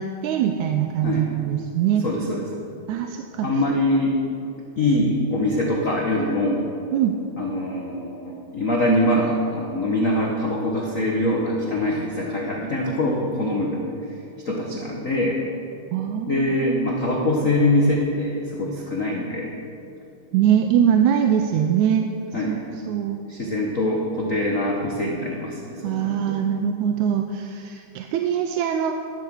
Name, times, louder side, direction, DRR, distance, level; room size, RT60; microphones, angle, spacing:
voice 1, 0.0-2.1 2.9-3.5 6.9-7.1 15.9-17.3 20.3-22.1 22.5-22.6 22.9-23.2 25.8-29.0, right 9 dB, 80° right, 6 dB, 1.9 m, -22 dB
voice 2, 2.0-2.4 3.4-4.2 4.8-6.7 7.4-13.8 14.4-15.4 16.3-19.5 22.3-22.6 23.3-26.4, left 1 dB, 80° left, -2 dB, 0.7 m, -23 dB
11.5 x 11.5 x 6.2 m, 2.7 s
omnidirectional pair, 3.5 m